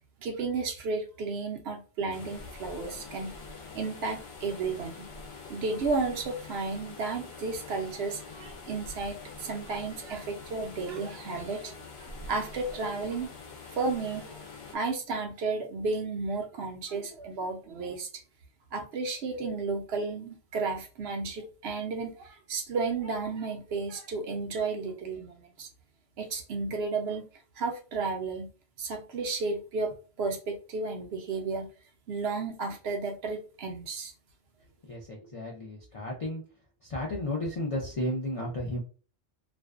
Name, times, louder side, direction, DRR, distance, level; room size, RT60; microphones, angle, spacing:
voice 1, 0.2-3.5 3.7-5.1 5.5-11.7 12.0-13.3 13.7-14.4 14.7-18.1 18.7-25.7 26.2-27.2 27.6-28.5 28.8-31.7 32.1-34.1, right 4 dB, 65° right, 3 dB, 0.8 m, -33 dB
sound 1, 2.1-14.8, left 4 dB, 65° left, 0.8 m, -45 dB
voice 2, 34.9-36.4 36.8-38.8, left 1 dB, 50° left, -3 dB, 0.4 m, -33 dB
2.5 x 2.1 x 2.3 m, 0.37 s
omnidirectional pair, 1.2 m